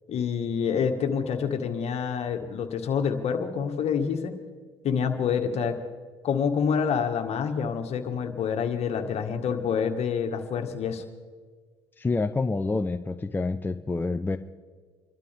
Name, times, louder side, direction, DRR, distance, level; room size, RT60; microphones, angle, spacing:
voice 1, 0.1-4.3 4.8-5.8 6.2-11.0, left 7 dB, 50° left, 5 dB, 1.8 m, -27 dB
voice 2, 12.0-14.4, left 3 dB, 15° left, 8 dB, 0.6 m, -27 dB
26.5 x 12.5 x 3.5 m, 1.5 s
hypercardioid pair, 70°, 14 cm